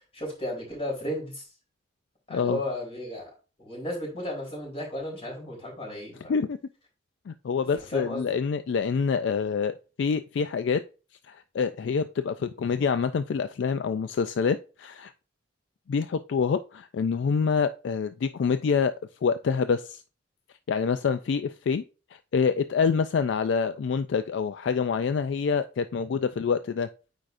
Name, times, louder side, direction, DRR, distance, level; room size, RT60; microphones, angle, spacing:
voice 1, 0.1-1.5 2.3-3.3 3.6-6.3 7.9-8.4, left 1 dB, 30° left, -2 dB, 3.6 m, -34 dB
voice 2, 7.3-10.8 11.3-15.1 15.9-18.9 19.2-20.0 20.7-21.8 22.3-26.9, left 5 dB, 65° left, 11 dB, 0.3 m, -26 dB
8.9 x 4.9 x 2.5 m, 0.33 s
head